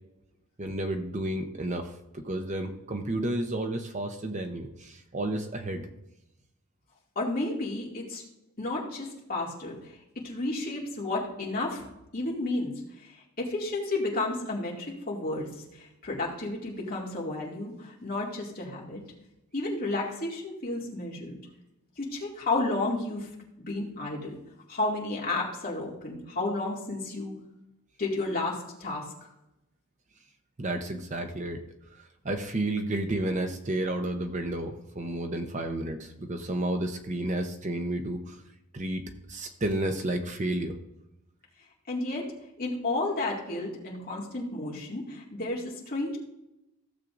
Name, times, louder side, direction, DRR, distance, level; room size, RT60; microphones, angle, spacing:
voice 1, 0.6-5.9 30.6-31.6 31.9-38.4 38.7-39.0 39.3-40.7, right 1 dB, 35° right, 6 dB, 0.7 m, -31 dB
voice 2, 7.2-8.2 8.6-9.8 10.2-11.8 12.1-12.7 13.4-15.5 15.8-19.0 19.5-21.4 22.0-23.3 23.6-24.4 24.7-27.3 28.0-29.0 41.9-42.3 42.6-46.2, left 2 dB, 40° left, -3 dB, 2.3 m, -32 dB
15.5 x 7.4 x 2.6 m, 0.89 s
head